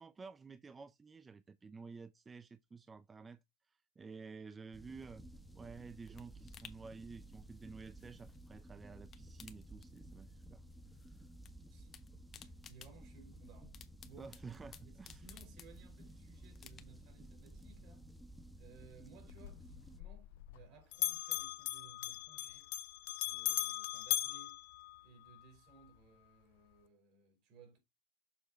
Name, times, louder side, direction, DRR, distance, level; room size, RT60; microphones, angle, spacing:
voice 1, 0.0-3.4 4.0-5.2 5.5-10.6 11.0-11.2 14.2-15.2, right 4 dB, 25° right, 0.5 m, -52 dB
sound 1, 4.7-20.0, right 1 dB, 5° right, 1.3 m, -55 dB
sound 2, 5.4-8.6 8.9-10.4 10.7-11.5 11.8-16.1 16.5-17.2 17.6-17.7, left 9 dB, 45° left, 1.2 m, -59 dB
voice 2, 12.3-14.3 14.8-18.1 18.6-22.7 23.2-24.6 25.0-27.8, right 4 dB, 65° right, 3.7 m, -61 dB
Bell, 19.3-20.7 20.9-25.4, left 20 dB, 80° left, 0.4 m, -39 dB
7.0 x 4.8 x 3.9 m
hypercardioid pair, 90°, 0 cm